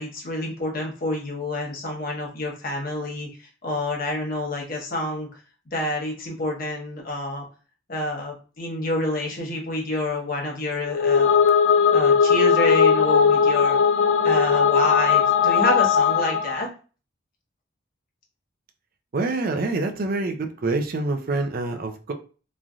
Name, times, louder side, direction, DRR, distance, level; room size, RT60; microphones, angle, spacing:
voice 1, 0.0-5.3 5.7-7.4 7.9-11.4 11.9-13.8 14.2-16.7, left 1 dB, 50° left, -1 dB, 1.0 m, -28 dB
sound 1, 10.9-16.6, left 6 dB, 70° left, 0.3 m, -18 dB
voice 2, 19.1-22.1, right 3 dB, 50° right, 6 dB, 0.5 m, -26 dB
3.1 x 2.5 x 2.3 m, 0.36 s
head